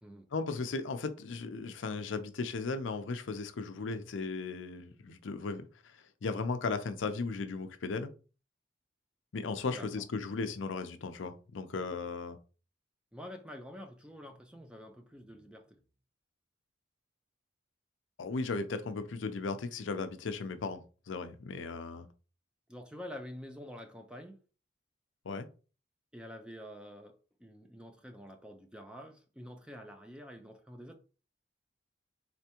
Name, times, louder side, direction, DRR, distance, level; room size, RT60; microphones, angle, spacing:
voice 1, 0.3-8.1 9.3-12.4 18.2-22.1 25.2-25.5, left 4 dB, 75° left, 0.5 m, -36 dB
voice 2, 9.7-10.0 13.1-15.8 22.7-24.4 26.1-31.0, equal, 5° right, 0.4 m, -47 dB
4.1 x 3.4 x 2.9 m
head